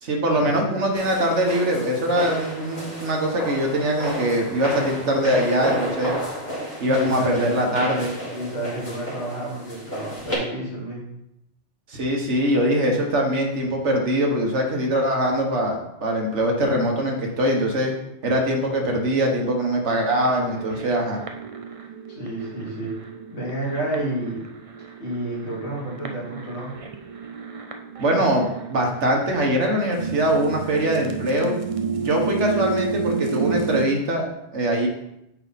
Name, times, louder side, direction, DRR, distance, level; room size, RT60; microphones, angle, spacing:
voice 1, 0.0-6.2 6.8-8.1 11.9-17.9 18.2-21.2 28.0-31.6 31.9-34.3 34.5-34.9, equal, 80° right, 1 dB, 1.7 m, -22 dB
sound 1, 0.9-10.4, equal, 40° left, 2.6 m, -32 dB
voice 2, 6.8-7.4 8.3-11.0 22.1-22.9 23.3-24.4 25.0-26.7, right 1 dB, 75° left, -6 dB, 3.1 m, -30 dB
sound 2, 20.1-33.9, right 5 dB, 35° right, 0.6 m, -31 dB
9.1 x 4.9 x 4.1 m, 0.84 s
omnidirectional pair, 1.2 m